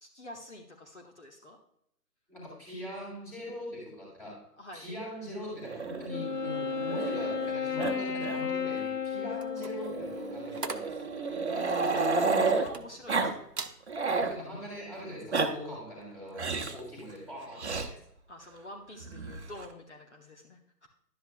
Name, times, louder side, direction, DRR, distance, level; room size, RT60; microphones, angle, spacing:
voice 1, 0.0-1.6 4.6-4.9 10.9-13.5 18.3-20.9, left 1 dB, 45° left, 1 dB, 1.0 m, -48 dB
voice 2, 2.3-11.1 14.1-17.9, left 1 dB, 5° left, -6 dB, 1.8 m, -42 dB
Growling, 5.6-7.5 7.8-7.9 8.2-8.4 8.7-8.8 9.8-12.7 13.1-13.3 13.7-14.4 15.1-15.5 16.4-16.8 17.6-17.9 19.0-19.7, right 4 dB, 45° right, 0.8 m, -31 dB
Wind instrument woodwind instrument, 6.1-10.6, left 6 dB, 75° left, 0.9 m, -33 dB
sound 1, 9.3-13.2 13.5-13.8 14.3-14.5, right 4 dB, 75° right, 0.9 m, -42 dB
11.5 x 8.0 x 2.3 m, 0.74 s
figure-of-eight pair, 145°, 48 cm